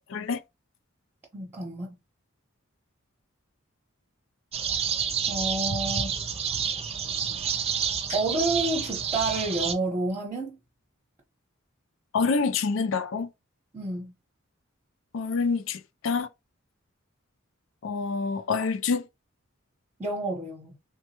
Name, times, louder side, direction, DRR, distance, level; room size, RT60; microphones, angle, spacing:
voice 1, 1.3-2.0 5.3-6.2 8.1-10.6 13.7-14.1 20.0-20.7, right 2 dB, 10° right, 0.8 m, -29 dB
sound 1, 4.5-9.7, right 7 dB, 30° right, 0.4 m, -29 dB
voice 2, 12.1-13.3 15.1-16.3 17.8-19.1, left 4 dB, 65° left, 0.4 m, -27 dB
3.4 x 2.2 x 2.8 m
head